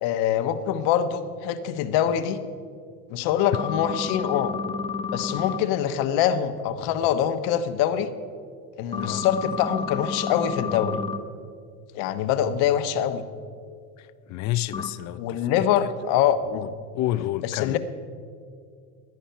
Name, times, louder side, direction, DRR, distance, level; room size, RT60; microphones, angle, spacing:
voice 1, 0.0-2.4 3.1-4.5 5.1-8.1 8.8-11.0 11.9-13.2 15.2-16.7 17.4-17.8, left 9 dB, 65° left, 1.2 m, -24 dB
sound 1, 3.5-5.6 8.9-11.2 14.7-14.9, left 5 dB, 15° left, 1.1 m, -30 dB
voice 2, 14.0-15.4 16.5-16.7 16.9-17.8, left 15 dB, 45° left, 0.5 m, -30 dB
17.5 x 11.0 x 5.6 m
supercardioid pair, 110°, 40 cm